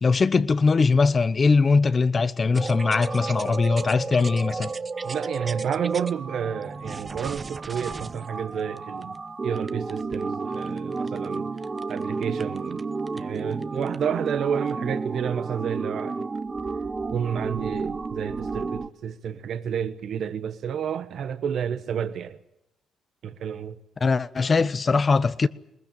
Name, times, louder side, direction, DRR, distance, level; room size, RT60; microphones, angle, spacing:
voice 1, 0.0-4.7 24.0-25.5, left 4 dB, 35° left, 0.9 m, -21 dB
sound 1, 2.5-18.9, right 4 dB, 30° right, 0.8 m, -32 dB
voice 2, 5.0-9.1 9.4-11.5 11.9-12.8 13.1-16.2 17.1-22.4 23.2-23.8, right 8 dB, 65° right, 1.0 m, -30 dB
21.5 x 19.5 x 8.9 m
cardioid pair, 90°, 0 cm